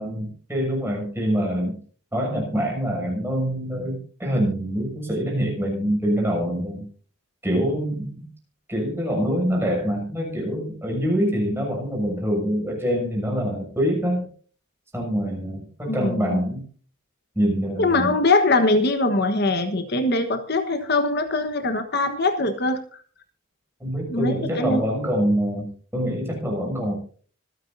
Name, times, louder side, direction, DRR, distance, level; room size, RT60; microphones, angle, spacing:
voice 1, 0.0-1.8 2.1-6.8 7.4-8.3 8.7-14.2 14.9-16.6 17.3-18.2 23.8-27.0, equal, 10° right, -1 dB, 6.8 m, -25 dB
voice 2, 15.8-16.4 17.8-22.8 24.1-24.8, left 2 dB, 50° left, 7 dB, 1.3 m, -22 dB
25.5 x 10.0 x 2.7 m, 0.43 s
head